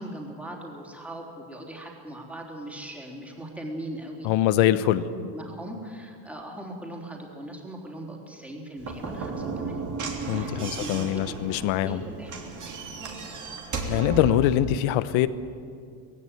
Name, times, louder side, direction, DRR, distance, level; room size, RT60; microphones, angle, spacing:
voice 1, 0.0-4.3 5.1-13.4, right 1 dB, 5° right, 0 dB, 3.7 m, -40 dB
voice 2, 4.2-5.0 10.3-12.0 13.9-15.3, left 13 dB, 75° left, 14 dB, 1.1 m, -23 dB
Slam / Knock, 8.8-14.6, right 4 dB, 40° right, 3.2 m, -34 dB
18.5 x 16.5 x 9.3 m, 2.3 s
cardioid pair, 115°, 46 cm